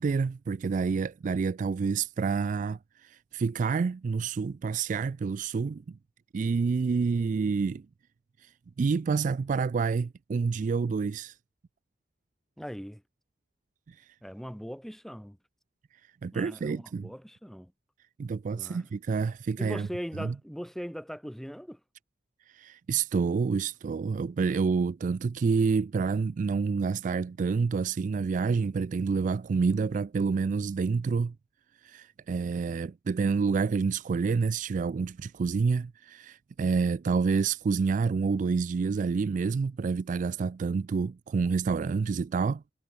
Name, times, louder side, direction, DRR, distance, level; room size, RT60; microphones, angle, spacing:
voice 1, 0.0-6.0 6.3-7.8 8.4-8.5 8.8-11.4 13.9-14.0 16.2-17.1 18.2-19.9 20.2-20.3 22.5-31.3 31.8-42.6, right 5 dB, 45° right, 0.3 m, -28 dB
voice 2, 12.6-13.0 14.2-15.4 16.3-17.7 18.5-18.9 19.6-21.8, equal, ahead, 3.0 m, -40 dB
head